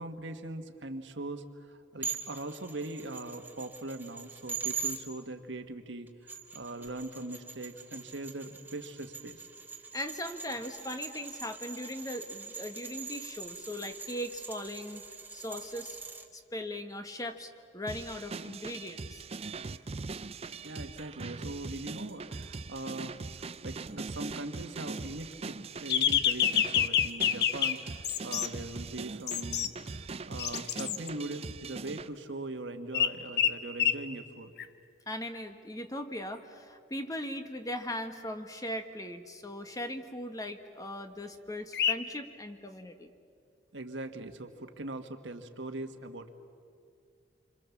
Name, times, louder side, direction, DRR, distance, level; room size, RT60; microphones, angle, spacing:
voice 1, 0.0-9.5 20.6-34.5 43.7-46.3, right 2 dB, 75° right, 6 dB, 1.6 m, -41 dB
sound 1, 2.0-5.0 6.1-16.3, right 5 dB, 10° right, 1.6 m, -42 dB
voice 2, 9.9-15.0 15.3-16.0 16.3-19.2 35.1-43.1, left 1 dB, 20° left, 7 dB, 1.3 m, -39 dB
sound 2, 17.9-32.1, right 4 dB, 35° right, 0.6 m, -41 dB
sound 3, 25.9-27.8 28.0-28.5 29.3-29.7 30.4-31.1 32.9-33.1 33.4-34.0 34.6-34.7 41.7-41.9, left 9 dB, 60° left, 0.9 m, -27 dB
27.5 x 25.5 x 7.2 m, 2.4 s
head